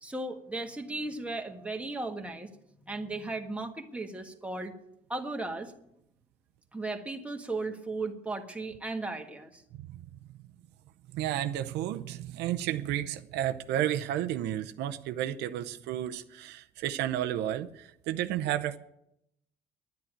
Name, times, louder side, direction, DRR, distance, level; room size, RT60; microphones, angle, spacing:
voice 1, 0.0-2.5 2.8-4.7 5.1-5.7 6.7-9.6, right 2 dB, 5° right, 3 dB, 1.5 m, -36 dB
voice 2, 11.1-18.8, right 12 dB, 85° right, 8 dB, 0.7 m, -32 dB
10.5 x 9.9 x 8.9 m, 0.79 s
cardioid pair, 110°, 17 cm